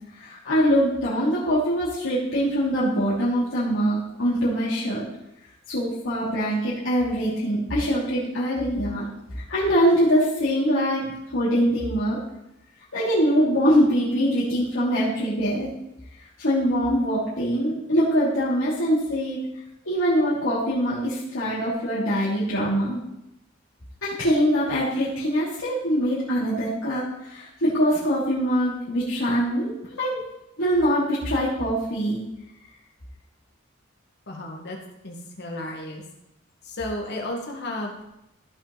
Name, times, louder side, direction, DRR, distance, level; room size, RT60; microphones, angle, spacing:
voice 1, 0.1-5.0 5.7-9.0 9.3-11.1 11.3-12.2 12.9-15.7 16.4-19.4 19.8-23.0 24.0-29.7 30.0-30.2 30.6-32.2, equal, 75° left, -11 dB, 3.2 m, -23 dB
voice 2, 34.3-34.8 35.0-36.0 36.6-38.0, left 1 dB, 60° left, 0 dB, 2.2 m, -33 dB
15.0 x 5.8 x 4.3 m, 0.86 s
head